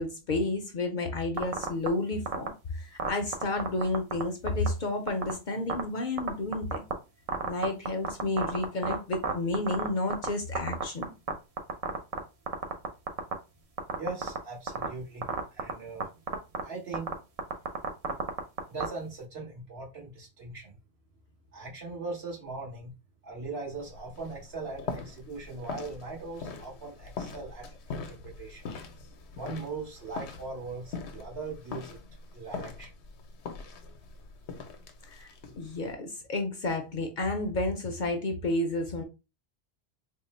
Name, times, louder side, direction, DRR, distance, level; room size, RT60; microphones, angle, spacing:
voice 1, 0.0-6.8 7.4-11.1 35.1-39.0, left 2 dB, 55° left, 0.6 m, -31 dB
sound 1, 1.4-1.9 2.3-2.5 3.0-4.2 4.5-4.7 5.1-5.3 5.7-5.8 6.2-6.9 7.3-10.3 10.5-11.3 11.6-12.2 12.5-13.3 13.8-14.4 14.7-14.9 15.2-15.7 16.0-16.1 16.3-16.6 16.9-18.9, right 6 dB, 45° right, 0.5 m, -29 dB
voice 2, 14.0-15.3 15.5-16.1 16.6-17.1 18.7-20.7 21.5-22.9 23.2-28.6 29.4-32.0 32.3-32.9, right 3 dB, 70° right, 1.7 m, -40 dB
sound 2, 23.7-35.9, left 4 dB, 85° left, 0.9 m, -42 dB
3.6 x 2.0 x 4.1 m
omnidirectional pair, 1.1 m